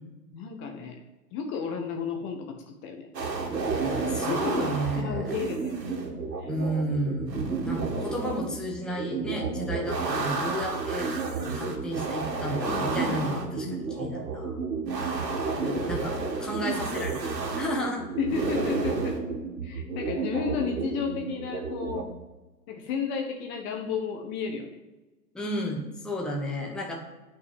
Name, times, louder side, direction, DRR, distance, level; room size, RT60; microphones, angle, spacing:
voice 1, 0.3-1.0 1.3-3.1 4.3-5.7 6.4-6.5 12.6-13.2 13.7-14.2 15.6-15.9 18.2-19.2 19.6-22.1 22.7-24.8, left 5 dB, 25° left, 3 dB, 1.2 m, -33 dB
sound 1, 3.1-22.0, right 4 dB, 85° right, 2.5 m, -31 dB
voice 2, 3.8-5.3 6.5-11.1 11.4-14.5 15.9-18.1 25.3-27.0, equal, ahead, -2 dB, 1.2 m, -32 dB
9.2 x 5.8 x 7.8 m, 1.1 s
hypercardioid pair, 135°, 49 cm